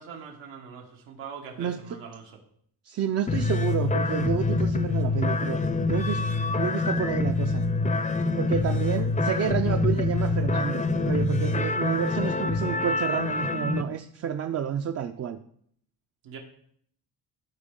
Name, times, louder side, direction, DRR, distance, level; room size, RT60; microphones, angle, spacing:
voice 1, 0.0-2.4 16.2-16.4, right 6 dB, 90° right, 1 dB, 1.5 m, -42 dB
voice 2, 1.6-2.0 2.8-5.6 5.9-6.3 6.6-7.6 8.4-15.4, right 8 dB, 35° right, 6 dB, 0.4 m, -29 dB
sound 1, 3.3-13.8, left 3 dB, 15° left, 0.5 m, -26 dB
12.5 x 4.4 x 3.7 m, 0.66 s
cardioid pair, 110°, 44 cm